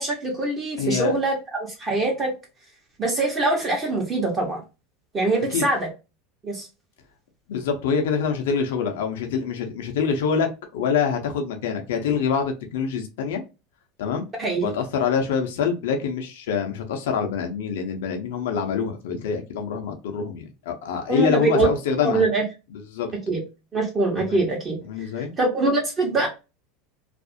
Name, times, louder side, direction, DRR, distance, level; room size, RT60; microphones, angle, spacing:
voice 1, 0.0-2.3 3.0-4.6 5.1-5.9 6.4-6.7 14.4-14.7 21.1-21.7 22.0-22.4 23.3-23.4 23.7-24.8 25.4-26.3, right 2 dB, 30° right, 0.8 m, -23 dB
voice 2, 0.8-1.1 5.5-5.6 7.5-13.4 14.0-14.2 14.6-22.3 22.7-23.1 24.2-24.4 24.9-25.3, left 6 dB, 80° left, 0.5 m, -25 dB
2.4 x 2.0 x 2.5 m
supercardioid pair, 115°, 0 cm